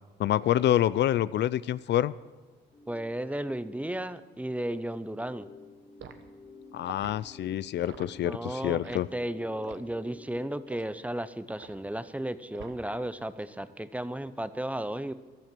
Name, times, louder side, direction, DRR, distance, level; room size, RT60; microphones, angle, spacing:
voice 1, 0.2-2.1 6.7-9.1, left 12 dB, 60° left, 18 dB, 0.4 m, -27 dB
sound 1, 2.7-10.8, left 3 dB, 30° left, 2.0 m, -52 dB
voice 2, 2.9-5.5 8.2-15.1, right 1 dB, 5° right, 14 dB, 0.6 m, -34 dB
Liquid, 6.0-6.2 6.8-7.2 7.8-8.1 8.7-9.0 9.6-9.9 10.7-10.9 11.6-11.9 12.5-13.0 13.3-13.6, right 8 dB, 70° right, 1.3 m, -47 dB
14.5 x 12.0 x 6.0 m, 1.3 s
cardioid pair, 90°, 20 cm